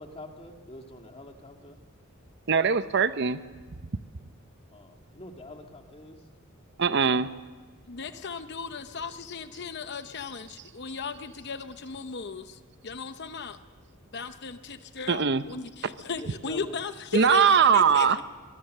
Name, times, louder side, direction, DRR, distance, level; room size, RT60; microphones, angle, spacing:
voice 1, 0.0-1.8 4.7-6.2 8.0-8.3 8.8-9.1 16.2-16.8 18.1-18.2, left 1 dB, 30° left, 3 dB, 2.3 m, -45 dB
voice 2, 2.5-3.4 6.8-7.3 15.1-15.4 17.1-18.2, right 6 dB, 55° right, 13 dB, 0.7 m, -21 dB
voice 3, 7.9-13.6 14.1-18.2, left 4 dB, 55° left, 10 dB, 0.8 m, -36 dB
24.0 x 21.5 x 6.7 m, 1.4 s
head